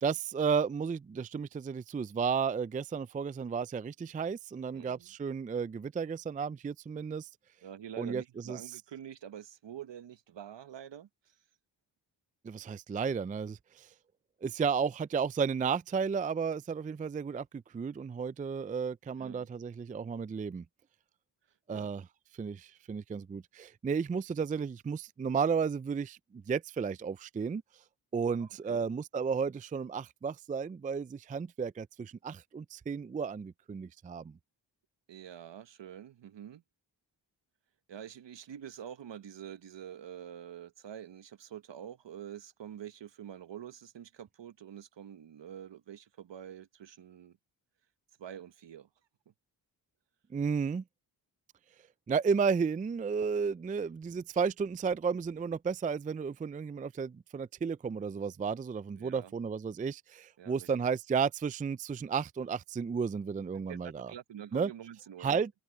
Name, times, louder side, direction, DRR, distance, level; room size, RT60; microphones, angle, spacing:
voice 1, 0.0-7.3 8.0-8.6 12.4-13.9 14.4-20.6 21.7-22.1 22.4-27.6 28.1-34.3 50.3-50.8 52.1-64.1 64.5-64.7 65.2-65.5, right 6 dB, 20° right, 0.4 m, -33 dB
voice 2, 4.7-5.1 7.6-11.3 19.2-19.5 21.7-21.9 28.4-28.8 35.1-36.6 37.9-47.4 48.2-48.9 59.0-59.3 60.4-60.7 63.7-65.4, right 9 dB, 65° right, 1.3 m, -46 dB
supercardioid pair, 45°, 46 cm